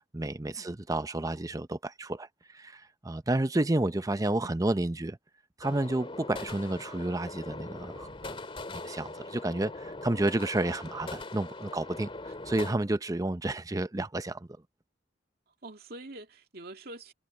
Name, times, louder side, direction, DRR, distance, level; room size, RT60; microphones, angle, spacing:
voice 1, 0.0-2.3 2.5-5.2 5.6-8.4 8.7-12.1 12.5-14.5, right 2 dB, 20° right, 0.6 m, -30 dB
sound 1, 5.6-12.7, left 2 dB, 30° left, 2.3 m, -41 dB
voice 2, 15.6-17.1, right 2 dB, 55° right, 2.4 m, -45 dB
head